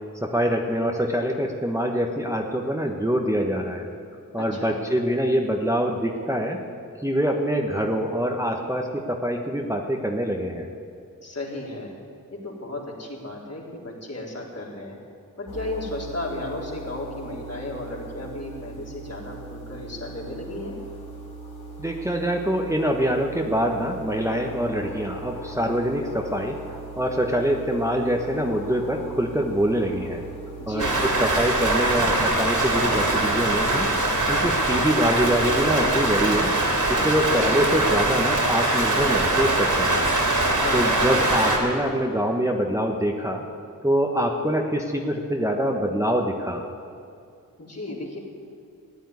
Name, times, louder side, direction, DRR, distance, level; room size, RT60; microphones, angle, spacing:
voice 1, 0.2-3.9 4.3-6.6 7.0-10.7 21.8-26.6 27.0-30.2 30.7-36.5 36.9-40.0 40.7-43.4 43.8-46.6, equal, 10° right, 1 dB, 1.3 m, -25 dB
voice 2, 4.4-4.8 11.2-12.0 12.3-15.0 15.4-20.8 30.6-31.0 40.5-40.9 47.6-48.2, left 2 dB, 45° left, -2 dB, 3.7 m, -34 dB
sound 1, 15.5-31.3, right 3 dB, 80° left, 4.1 m, -40 dB
Rain, 30.8-41.6, right 2 dB, 55° right, 3.3 m, -22 dB
14.0 x 9.2 x 9.5 m, 2.5 s
cardioid pair, 45°, 36 cm